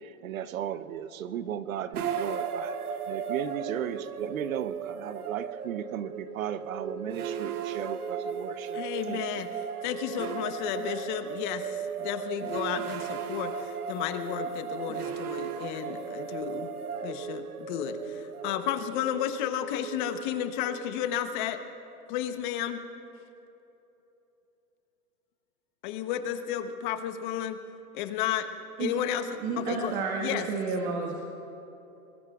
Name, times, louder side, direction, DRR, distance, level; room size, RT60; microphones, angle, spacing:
voice 1, 0.0-8.8 9.1-9.2, right 9 dB, 65° right, 13 dB, 0.9 m, -35 dB
sound 1, 1.9-21.1, right 7 dB, 85° right, 1.2 m, -36 dB
voice 2, 8.7-9.5 9.8-16.7 17.0-21.6 22.1-22.8 25.8-27.6 27.9-28.5 28.8-29.3 29.6-30.0 30.2-30.5, left 10 dB, 35° left, 9 dB, 0.9 m, -32 dB
voice 3, 29.4-31.1, right 4 dB, 35° right, -1 dB, 1.6 m, -31 dB
29.0 x 21.0 x 2.4 m, 3.0 s
hypercardioid pair, 145°, 44 cm